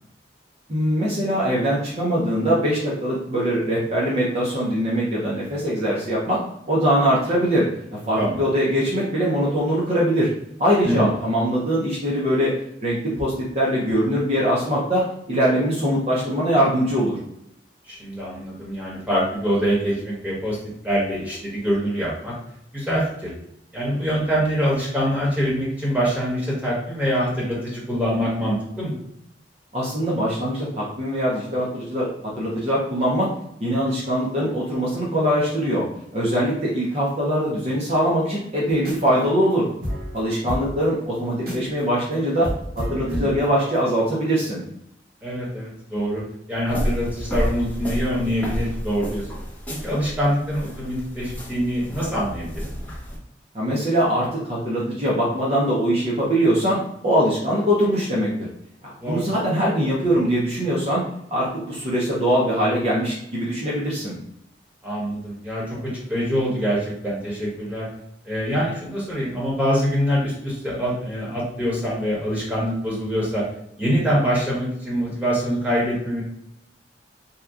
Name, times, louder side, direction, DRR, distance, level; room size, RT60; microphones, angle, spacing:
voice 1, 0.7-6.4 6.7-7.7 8.1-10.3 10.6-12.5 12.8-17.2 29.7-33.3 33.6-35.9 36.1-39.7 40.1-42.5 42.8-44.6 53.5-58.3 59.0-61.0 61.3-64.1, equal, 40° right, -6 dB, 0.7 m, -22 dB
voice 2, 17.9-20.6 20.8-22.3 22.7-23.3 23.7-28.9 43.1-43.3 45.2-46.2 46.5-49.3 49.8-52.7 59.0-59.2 64.8-67.9 68.2-73.4 73.8-76.2, equal, 10° right, -7 dB, 1.3 m, -24 dB
sound 1, 38.8-39.2 39.5-39.6 39.8-41.8 42.1-42.2 42.4-43.9, equal, 55° right, 1.4 m, -31 dB
sound 2, 46.7-53.2, equal, 10° left, 0.8 m, -30 dB
2.8 x 2.3 x 3.6 m, 0.76 s
head